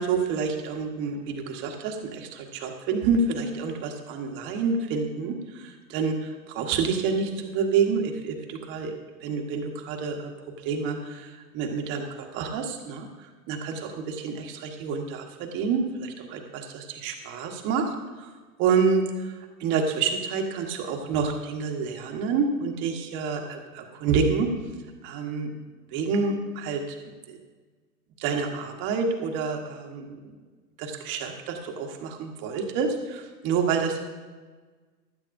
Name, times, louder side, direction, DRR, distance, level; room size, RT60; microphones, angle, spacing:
voice 1, 0.0-10.3 10.6-13.1 13.5-18.3 18.6-19.3 19.6-24.5 25.0-25.5 25.9-27.0 27.3-27.4 28.2-30.2 30.8-34.0, right 5 dB, 25° right, 3 dB, 1.2 m, -28 dB
15.5 x 11.5 x 2.6 m, 1.4 s
hypercardioid pair, 145°, 49 cm